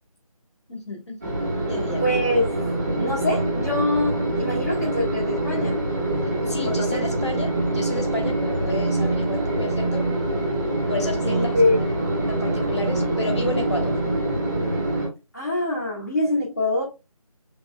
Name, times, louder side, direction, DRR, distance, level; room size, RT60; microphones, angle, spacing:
voice 1, 0.7-1.4 1.7-2.0 6.4-10.1 10.9-11.5 12.3-14.0, left 2 dB, 50° left, 1.3 m, -32 dB
sound 1, 1.2-15.1, right 1 dB, 5° right, 1.1 m, -25 dB
voice 2, 2.0-2.6 3.0-5.8 6.6-7.2 11.2-11.8 15.3-16.8, left 1 dB, 30° left, 1.0 m, -24 dB
4.7 x 3.6 x 2.2 m
figure-of-eight pair, 180°, 19 cm